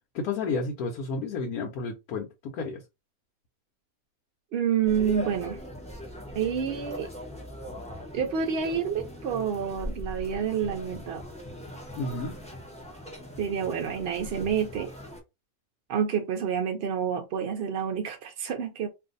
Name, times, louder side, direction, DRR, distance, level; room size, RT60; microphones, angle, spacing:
voice 1, 0.1-2.8 11.9-12.3, left 4 dB, 80° left, 1.2 m, -31 dB
voice 2, 4.5-5.6 6.3-7.1 8.1-11.3 13.4-14.9 15.9-18.9, right 7 dB, 65° right, 0.6 m, -28 dB
sound 1, 4.8-15.2, left 1 dB, 5° left, 0.5 m, -40 dB
2.6 x 2.5 x 3.8 m
omnidirectional pair, 1.5 m